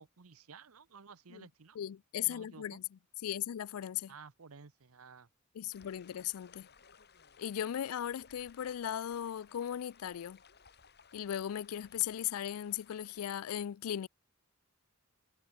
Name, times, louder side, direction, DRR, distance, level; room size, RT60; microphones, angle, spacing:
voice 1, 0.0-1.8 2.2-2.8 4.1-5.3, right 5 dB, 85° right, 0.9 m, -54 dB
voice 2, 1.8-2.8 3.2-4.1 5.6-6.7 7.4-10.4 11.1-14.1, left 10 dB, 85° left, 0.4 m, -37 dB
sound 1, 5.7-13.2, left 6 dB, 50° left, 2.9 m, -61 dB
head